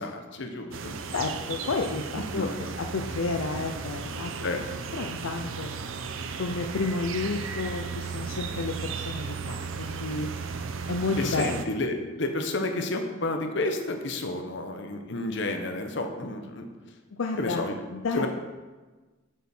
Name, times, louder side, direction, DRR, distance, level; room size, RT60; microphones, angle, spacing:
voice 1, 0.0-1.2 2.3-2.7 4.4-4.6 11.2-16.7 17.4-17.8 18.1-18.3, left 2 dB, 60° left, 5 dB, 1.0 m, -31 dB
sound 1, 0.7-11.7, right 5 dB, 75° right, 0.6 m, -35 dB
voice 2, 1.1-2.5 2.8-4.5 4.9-5.7 6.4-10.3 10.9-11.6 17.2-18.3, left 3 dB, 80° left, 4 dB, 0.6 m, -31 dB
8.3 x 7.3 x 4.4 m, 1.3 s
head